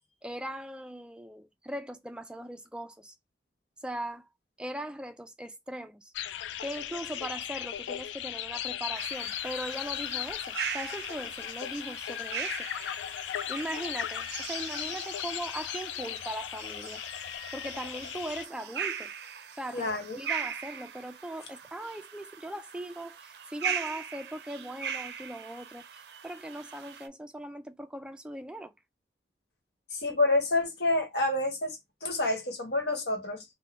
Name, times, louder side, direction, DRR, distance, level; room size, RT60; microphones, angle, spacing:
voice 1, 0.2-3.1 3.8-4.3 4.6-6.1 6.6-12.5 13.5-17.0 17.5-19.1 19.6-25.8 26.2-28.7, right 1 dB, 5° right, 0.3 m, -39 dB
sound 1, 6.1-18.5, left 11 dB, 85° left, 0.3 m, -37 dB
sound 2, 8.9-27.1, right 7 dB, 70° right, 0.4 m, -40 dB
voice 2, 19.7-20.2 29.9-33.4, left 2 dB, 65° left, 1.2 m, -28 dB
3.5 x 2.2 x 2.3 m
head